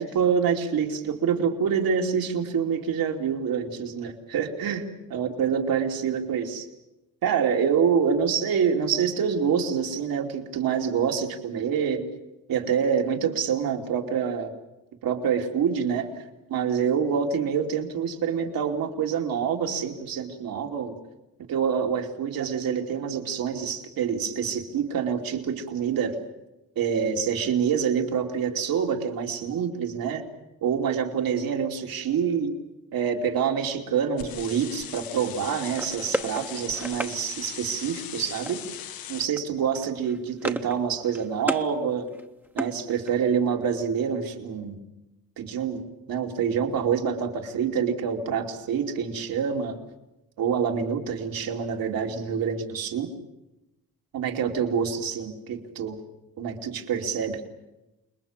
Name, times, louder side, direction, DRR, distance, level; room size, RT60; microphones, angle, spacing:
voice 1, 0.0-4.8 5.1-6.7 7.2-12.1 12.5-14.5 15.0-16.2 16.5-21.0 21.5-26.2 26.8-30.2 30.6-32.6 32.9-38.6 39.1-42.1 42.5-44.8 45.4-45.8 46.1-49.8 50.4-53.1 54.1-56.0 56.4-57.4, right 7 dB, 75° right, 2 dB, 3.0 m, -26 dB
sound 1, 34.2-39.3, left 10 dB, 85° left, 1.2 m, -39 dB
sound 2, 35.7-37.2 38.5-38.9 39.1-39.4 39.7-40.8 41.0-41.7 42.1-43.3, right 1 dB, 5° right, 1.0 m, -33 dB
28.5 x 21.0 x 7.4 m, 0.96 s
cardioid pair, 125°, 35 cm